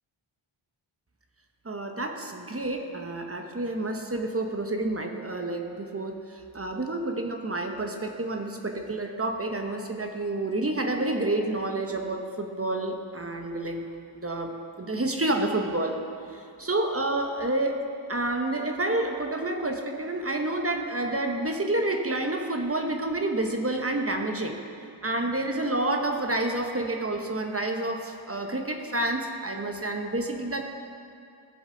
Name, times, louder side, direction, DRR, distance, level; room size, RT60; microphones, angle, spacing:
voice 1, 1.6-13.8 14.1-14.5 14.8-16.0 16.3-17.8 18.1-24.6 25.0-30.6, right 2 dB, 30° right, 3 dB, 0.9 m, -29 dB
15.5 x 7.1 x 3.8 m, 2.4 s
wide cardioid pair, 85°, 49 cm